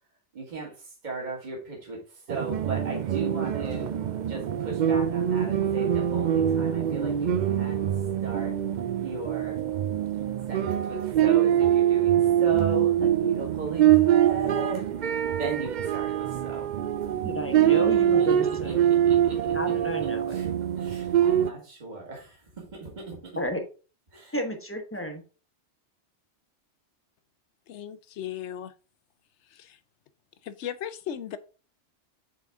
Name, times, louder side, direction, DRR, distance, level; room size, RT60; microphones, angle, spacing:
voice 1, 0.3-3.9 4.3-7.9 8.2-8.5 9.0-9.6 10.5-14.9 15.4-16.7 17.0-17.1 18.2-19.4 20.3-23.3 24.1-24.3, right 3 dB, 40° right, 2.0 m, -37 dB
sound 1, 2.3-21.5, right 10 dB, 60° right, 0.5 m, -24 dB
voice 2, 17.2-18.8 19.5-20.4 23.4-23.6 24.3-25.2, equal, 10° left, 0.9 m, -32 dB
voice 3, 27.7-28.7 29.5-29.8 30.4-31.4, left 10 dB, 75° left, 0.9 m, -36 dB
7.6 x 4.0 x 3.5 m
omnidirectional pair, 1.2 m